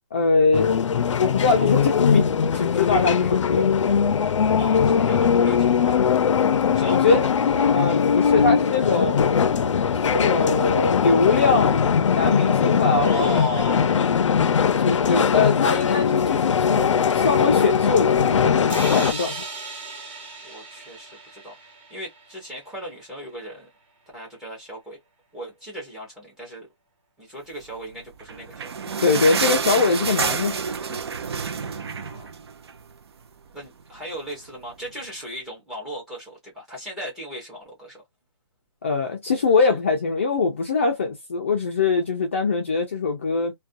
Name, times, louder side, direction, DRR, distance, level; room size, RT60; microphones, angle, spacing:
voice 1, 0.1-0.7 1.2-3.7 6.9-7.2 7.7-9.3 10.0-13.4 14.8-19.4 29.0-30.6 38.8-43.5, left 4 dB, 25° left, 0.4 m, -22 dB
sound 1, 0.5-19.1, left 7 dB, 85° left, 0.5 m, -20 dB
voice 2, 4.6-6.1 6.7-8.2 12.9-14.2 20.4-23.7 24.1-25.0 25.3-26.7 27.2-28.9 31.5-32.3 33.5-38.0, equal, 5° right, 0.7 m, -36 dB
sound 2, 18.7-22.5, right 3 dB, 25° right, 1.1 m, -36 dB
sound 3, 28.1-32.9 33.3-33.4 33.6-33.8 34.5-34.6, right 6 dB, 55° right, 0.6 m, -28 dB
2.4 x 2.2 x 2.5 m
hypercardioid pair, 175°, 15 cm